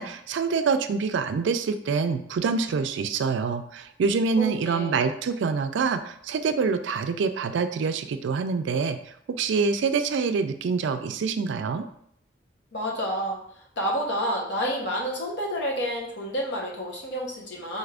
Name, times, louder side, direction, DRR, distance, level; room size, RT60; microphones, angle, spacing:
voice 1, 0.0-11.9, right 5 dB, 75° right, 9 dB, 0.3 m, -26 dB
voice 2, 4.4-5.0 12.7-17.8, equal, 70° left, -2 dB, 1.0 m, -29 dB
4.2 x 2.4 x 3.3 m, 0.69 s
head